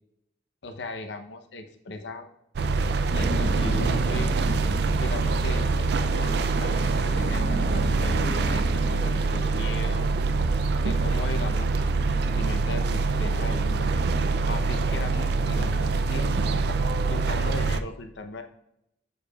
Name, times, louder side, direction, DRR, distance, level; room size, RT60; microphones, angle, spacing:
voice 1, 0.6-2.3 3.1-4.3 4.7-10.2 10.8-13.9 14.5-18.4, left 2 dB, 85° left, 6 dB, 0.7 m, -38 dB
sound 1, 2.6-17.8, right 3 dB, 65° right, 0.3 m, -25 dB
sound 2, 3.1-9.7, right 1 dB, 85° right, 1.0 m, -33 dB
6.8 x 6.7 x 2.3 m, 0.79 s
head